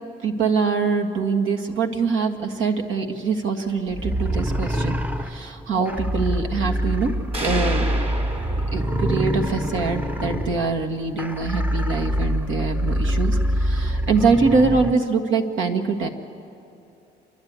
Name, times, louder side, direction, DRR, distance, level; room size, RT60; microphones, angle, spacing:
voice 1, 0.2-5.0 5.2-7.8 8.7-16.1, right 4 dB, 80° right, 3 dB, 1.7 m, -23 dB
sound 1, 3.9-14.9, equal, 10° right, 0.6 m, -25 dB
sound 2, 7.3-9.3, right 1 dB, 30° right, 2.0 m, -31 dB
29.5 x 11.5 x 9.5 m, 2.8 s
cardioid pair, 90°, 20 cm